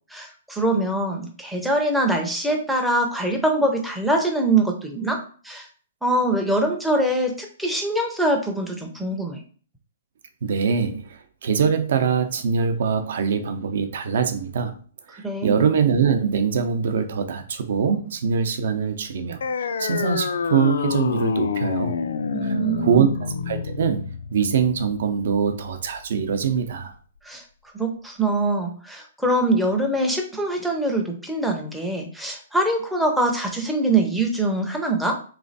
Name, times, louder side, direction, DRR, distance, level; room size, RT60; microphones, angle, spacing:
voice 1, 0.1-5.7 6.0-9.4 15.2-15.6 22.3-23.1 27.2-27.4 27.7-35.2, right 2 dB, ahead, 0.5 m, -23 dB
voice 2, 10.4-14.7 15.1-21.9 22.4-23.1 23.5-26.9, right 6 dB, 55° right, 0.6 m, -23 dB
sound 1, 19.4-26.4, left 6 dB, 80° left, 0.3 m, -28 dB
3.4 x 3.1 x 4.0 m
hypercardioid pair, 170°, 0 cm